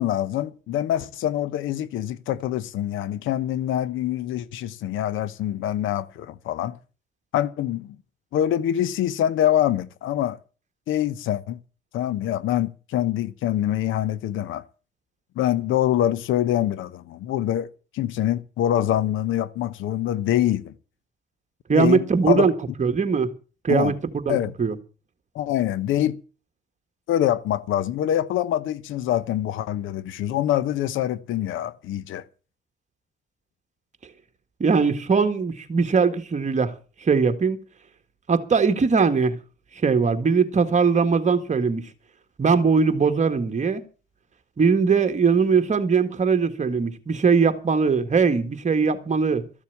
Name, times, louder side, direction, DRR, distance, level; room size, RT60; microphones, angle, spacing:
voice 1, 0.0-6.8 7.3-8.0 8.3-10.4 10.9-11.6 11.9-14.6 15.4-20.7 21.7-22.5 23.7-23.9 24.3-24.5 25.3-26.2 27.1-32.2, left 12 dB, 85° left, 0.9 m, -25 dB
voice 2, 21.7-22.5 22.8-23.3 23.6-24.8 34.6-36.7 37.0-37.6 38.3-39.4 39.8-41.9 42.4-43.8 44.6-49.4, right 5 dB, 35° right, 1.7 m, -20 dB
14.0 x 7.2 x 8.1 m
cardioid pair, 90°, 20 cm